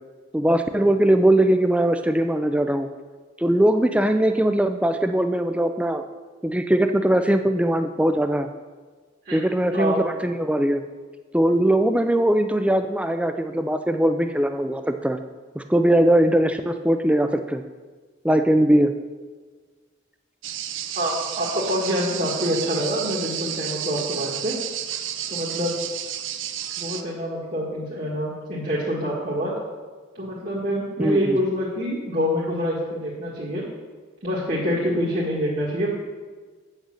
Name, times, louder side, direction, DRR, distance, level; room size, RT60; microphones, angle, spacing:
voice 1, 0.3-2.9 3.4-6.0 6.4-8.5 9.3-10.8 11.3-15.2 15.6-17.6 18.2-18.9 31.0-31.4, right 1 dB, 5° right, 8 dB, 0.4 m, -20 dB
voice 2, 9.3-10.0 20.9-24.6 25.3-25.8 26.8-29.5 30.2-33.6 34.2-35.9, equal, 40° right, -6 dB, 1.7 m, -26 dB
sound 1, 20.4-27.0, right 10 dB, 70° right, 0.6 m, -31 dB
8.5 x 6.5 x 6.3 m, 1.4 s
head